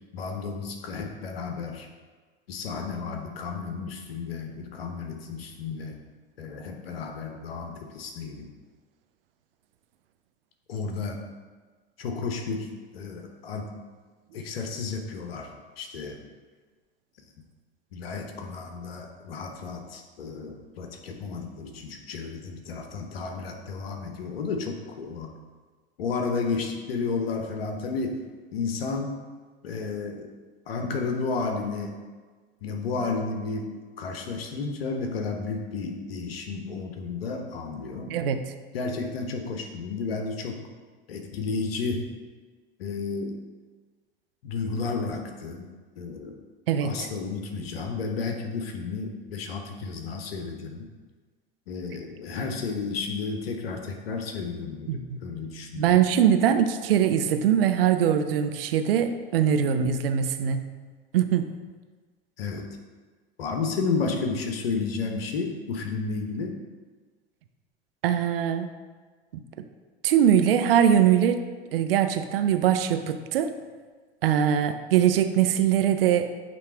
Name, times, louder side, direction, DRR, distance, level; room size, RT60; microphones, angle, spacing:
voice 1, 0.1-1.9 2.5-6.0 6.4-8.5 10.7-11.2 12.0-12.7 12.9-13.7 14.3-15.5 15.8-16.2 17.9-25.3 26.0-28.2 28.5-29.1 29.6-30.3 30.7-31.9 32.6-33.7 34.0-38.1 38.7-40.6 41.1-42.1 42.8-43.4 44.4-45.7 46.0-46.3 46.8-50.9 51.7-56.0 62.4-62.7 63.4-66.5, left 4 dB, 70° left, 4 dB, 1.0 m, -32 dB
voice 2, 38.1-38.4 46.7-47.1 54.9-55.2 55.7-60.6 61.1-61.5 68.0-68.7 69.6-69.7 70.0-71.4 71.7-73.5 74.2-76.3, right 9 dB, 65° right, 8 dB, 0.6 m, -22 dB
8.4 x 3.1 x 4.5 m, 1.4 s
figure-of-eight pair, 75°, 31 cm